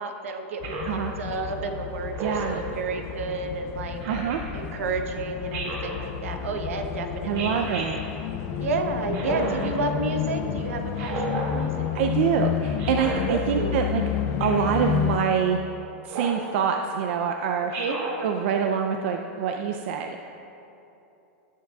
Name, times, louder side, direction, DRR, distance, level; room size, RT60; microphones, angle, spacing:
voice 1, 0.0-4.0 4.5-7.7 8.6-11.9 13.2-13.9 17.8-18.0, right 3 dB, 85° right, 5 dB, 1.1 m, -31 dB
sound 1, 0.6-15.2, left 10 dB, 35° left, 0.5 m, -31 dB
Speech synthesizer, 0.6-1.0 2.1-2.6 4.0-4.4 5.5-6.0 7.3-7.9 9.1-9.7 10.9-11.5 12.8-13.2 14.4-14.7 16.1-16.4 17.7-18.2, right 3 dB, 45° right, 2.1 m, -32 dB
voice 2, 2.2-2.6 4.1-4.4 7.2-8.0 9.3-9.7 11.0-11.2 11.9-14.0 14.4-15.6 16.0-17.7 18.2-20.2, right 7 dB, 65° right, 4 dB, 0.5 m, -26 dB
18.5 x 7.3 x 2.4 m, 3.0 s
supercardioid pair, 140°, 7 cm